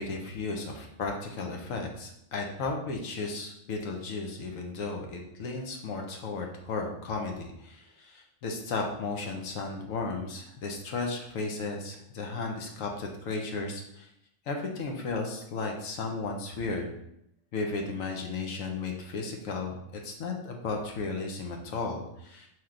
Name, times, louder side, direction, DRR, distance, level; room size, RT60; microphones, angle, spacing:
voice 1, 0.0-14.1 14.5-16.9 17.5-19.8 20.0-22.5, left 3 dB, 75° left, 2 dB, 1.1 m, -34 dB
4.5 x 3.2 x 3.7 m, 0.78 s
omnidirectional pair, 1.4 m